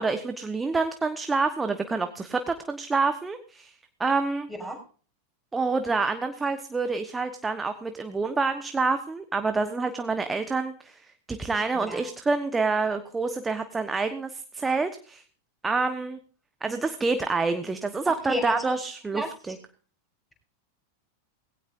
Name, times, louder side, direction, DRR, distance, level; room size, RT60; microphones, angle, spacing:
voice 1, 0.0-3.7 4.0-4.5 5.5-15.2 15.6-16.2 16.6-19.6, right 4 dB, 10° right, 8 dB, 1.2 m, -27 dB
voice 2, 18.3-18.7 19.1-19.3, equal, 5° left, 2 dB, 6.6 m, -30 dB
19.5 x 17.0 x 2.7 m, 0.41 s
figure-of-eight pair, 90°, 0 cm